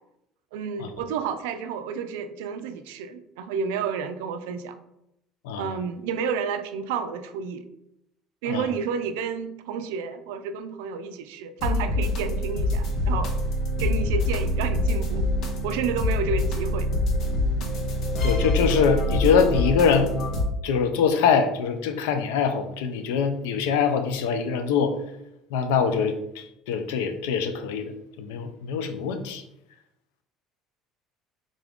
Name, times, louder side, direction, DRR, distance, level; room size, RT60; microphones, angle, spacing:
voice 1, 0.5-4.8 5.6-7.6 8.4-13.3 13.8-16.9, right 6 dB, 90° right, 10 dB, 0.3 m, -30 dB
voice 2, 5.4-5.8 8.5-8.7 18.2-20.1 20.6-25.0 25.5-27.9 28.2-29.4, left 6 dB, 90° left, 7 dB, 0.4 m, -23 dB
sound 1, 11.6-20.4, left 1 dB, 60° left, 0.7 m, -25 dB
3.7 x 2.4 x 3.5 m, 0.83 s
supercardioid pair, 100°, 0 cm